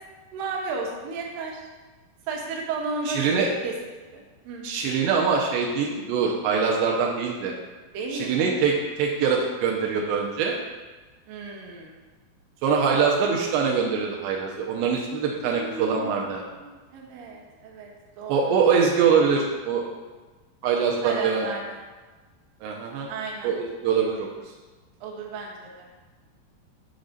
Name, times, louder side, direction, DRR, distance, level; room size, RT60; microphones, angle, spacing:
voice 1, 0.3-1.6 2.3-3.7 4.1-4.7 7.9-8.5 11.3-12.0 15.5-17.9 18.2-18.6 21.0-21.8 23.1-23.6 25.0-25.9, right 3 dB, 65° right, -1 dB, 2.4 m, -34 dB
voice 2, 3.1-3.5 4.6-7.5 8.1-10.6 12.6-16.4 18.3-19.8 20.6-21.5 22.6-23.1 23.4-24.3, right 6 dB, 85° right, -1 dB, 2.8 m, -23 dB
7.3 x 4.0 x 6.5 m, 1.3 s
omnidirectional pair, 5.1 m